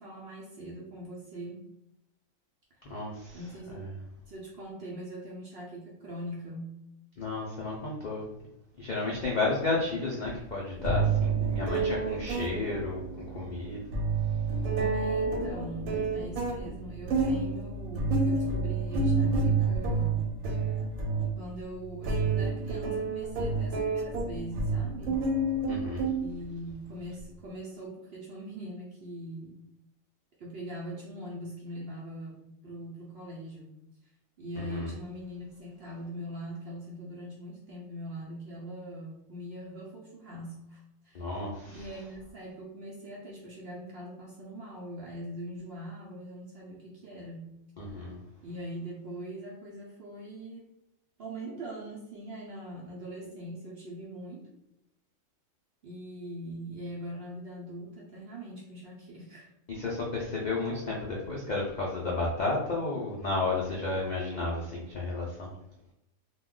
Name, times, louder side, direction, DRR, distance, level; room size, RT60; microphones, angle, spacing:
voice 1, 0.0-1.6 3.3-3.8 4.3-6.8 14.9-20.2 20.5-20.8 21.4-25.2 26.1-29.6 30.4-33.7 34.0-34.1 34.4-41.3 41.7-47.5 48.4-50.7 51.2-54.5 55.8-59.5, right 1 dB, 60° right, -4 dB, 0.7 m, -42 dB
voice 2, 2.8-3.4 3.7-3.9 7.2-8.2 8.8-13.8 25.7-26.1 34.6-34.9 41.1-41.9 47.8-48.2 59.7-65.5, left 3 dB, 90° left, -4 dB, 0.4 m, -32 dB
sound 1, 10.3-10.4 10.8-26.7, right 3 dB, 85° right, 1.0 m, -29 dB
2.2 x 2.2 x 3.6 m, 0.85 s
omnidirectional pair, 1.4 m